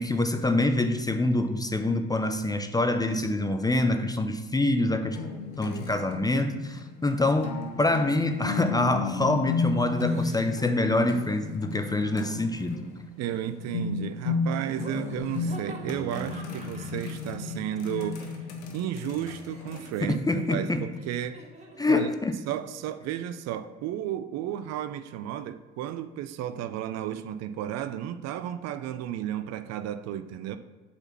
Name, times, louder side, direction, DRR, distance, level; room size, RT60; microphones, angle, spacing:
voice 1, 0.0-5.2 5.6-12.9 20.0-20.9 21.8-22.3, left 2 dB, 10° left, 8 dB, 0.6 m, -26 dB
sound 1, 5.1-19.9, left 4 dB, 75° left, 1.1 m, -34 dB
Laughter, 9.8-10.8 11.8-12.9 14.7-18.6 18.8-21.9, right 1 dB, 20° right, 1.8 m, -48 dB
voice 2, 13.2-18.4 18.7-21.4 21.9-22.1 22.5-30.6, right 11 dB, 50° right, 11 dB, 0.5 m, -33 dB
7.8 x 4.2 x 5.8 m, 1.3 s
hypercardioid pair, 60°, 35 cm